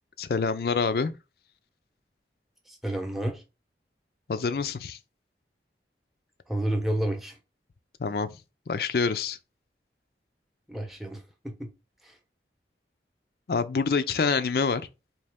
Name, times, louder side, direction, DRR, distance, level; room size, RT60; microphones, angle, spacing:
voice 1, 0.2-1.1 4.3-5.0 8.0-8.3 8.7-9.4 13.5-14.8, left 5 dB, 60° left, 0.4 m, -26 dB
voice 2, 2.7-3.4 6.5-7.4 10.7-11.7 12.0-12.2, right 1 dB, ahead, 0.8 m, -30 dB
4.2 x 2.9 x 3.5 m
head